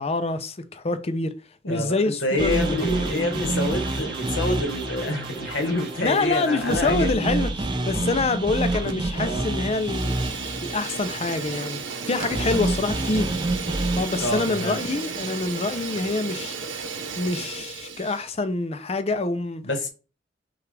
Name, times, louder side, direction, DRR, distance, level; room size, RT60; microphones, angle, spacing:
voice 1, 0.0-1.3 1.7-3.5 6.0-7.5 7.8-13.4 14.0-16.5 17.2-19.6, left 3 dB, 35° left, 0.5 m, -26 dB
voice 2, 1.6-7.4 9.1-9.4 14.2-14.8 19.6-19.9, left 1 dB, 75° left, 1.3 m, -27 dB
sound 1, 2.4-16.5, right 2 dB, 25° right, 0.6 m, -29 dB
sound 2, 2.5-6.9, right 2 dB, 50° right, 1.7 m, -38 dB
Fire, 8.7-9.2 9.5-18.3, right 5 dB, 85° right, 0.8 m, -34 dB
5.8 x 2.4 x 3.3 m
head